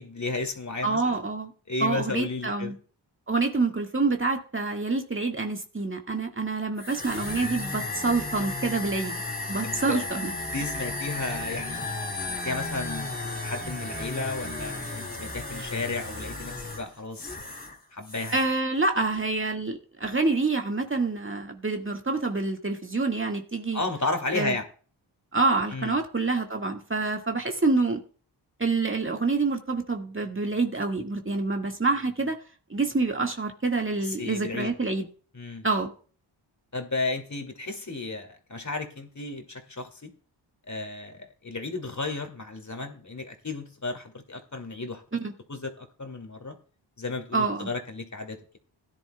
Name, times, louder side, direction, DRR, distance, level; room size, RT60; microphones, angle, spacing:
voice 1, 0.0-1.2 1.7-2.7 9.6-10.0 10.5-11.9 12.3-17.3 17.9-18.4 23.7-24.6 25.7-26.0 34.0-34.7 35.3-35.6 36.7-40.1 40.7-45.0 45.5-46.5 47.0-48.6, left 3 dB, 35° left, 5 dB, 2.4 m, -33 dB
voice 2, 0.8-1.5 1.8-2.8 3.3-9.2 9.5-10.3 18.3-23.8 24.3-24.6 25.3-28.0 28.6-32.4 32.7-35.1 35.6-35.9 45.1-45.3 47.3-47.7, right 3 dB, 25° right, 3 dB, 1.8 m, -27 dB
sound 1, 6.8-17.8 18.0-18.6, left 2 dB, 20° left, 3.0 m, -34 dB
16.0 x 10.5 x 2.3 m, 0.41 s
supercardioid pair, 40°, 50 cm